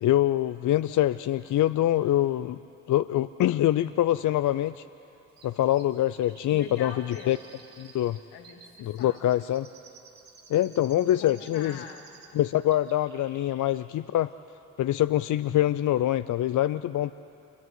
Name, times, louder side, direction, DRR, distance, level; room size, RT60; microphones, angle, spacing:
voice 1, 0.0-2.6 2.9-4.8 5.4-6.9 7.3-7.4 7.8-8.2 8.8-9.7 10.5-11.8 12.3-14.3 14.8-17.1, left 13 dB, 55° left, 14 dB, 0.6 m, -24 dB
Chirp tweet, 5.4-12.4 12.7-13.6 13.9-14.0, right 5 dB, 70° right, 4.2 m, -53 dB
voice 2, 6.5-7.5 8.3-9.3 11.2-12.1, left 7 dB, 80° left, 2 dB, 2.3 m, -43 dB
26.5 x 22.0 x 9.5 m, 2.9 s
hypercardioid pair, 45°, 37 cm